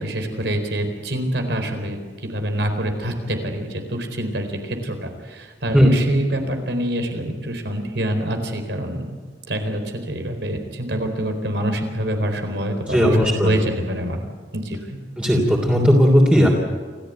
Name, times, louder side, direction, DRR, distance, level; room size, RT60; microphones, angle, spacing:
voice 1, 0.0-9.2 9.5-14.2 14.5-15.0, right 1 dB, 75° right, 5 dB, 4.2 m, -26 dB
voice 2, 12.9-13.5 15.2-16.5, equal, 5° right, -1 dB, 3.1 m, -16 dB
28.0 x 15.5 x 9.2 m, 1.6 s
head